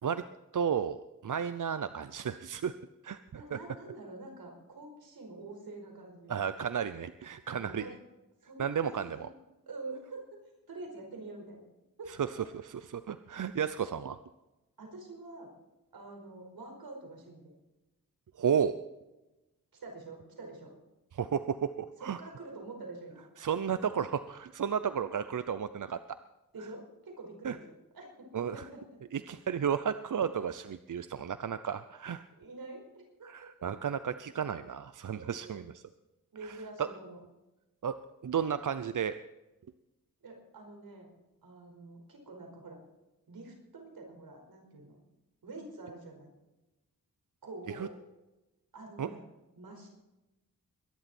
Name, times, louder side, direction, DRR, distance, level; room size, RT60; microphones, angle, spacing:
voice 1, 0.5-2.7 3.0-3.6 6.3-7.8 8.6-9.3 12.2-12.3 12.6-14.2 18.4-18.8 21.1-22.2 23.4-26.0 27.4-27.6 28.3-28.6 29.1-32.2 33.2-35.7 36.8-36.9 37.8-38.0 38.2-39.2 47.7-47.9 49.0-49.1, right 7 dB, 60° right, 12 dB, 0.7 m, -33 dB
voice 2, 3.3-6.3 7.5-8.0 8.4-8.9 9.1-9.4 9.7-10.3 10.7-11.7 12.0-12.1 14.8-15.5 15.9-17.5 19.8-20.7 22.0-23.2 26.5-27.6 27.9-29.0 32.4-33.5 35.1-35.6 36.3-37.2 40.2-41.1 41.4-42.8 43.3-45.0 45.4-46.3 47.4-47.9 48.7-49.2 49.6-49.9, right 2 dB, 90° right, 2 dB, 5.0 m, -46 dB
22.0 x 11.0 x 4.4 m, 1.0 s
cardioid pair, 60°, 35 cm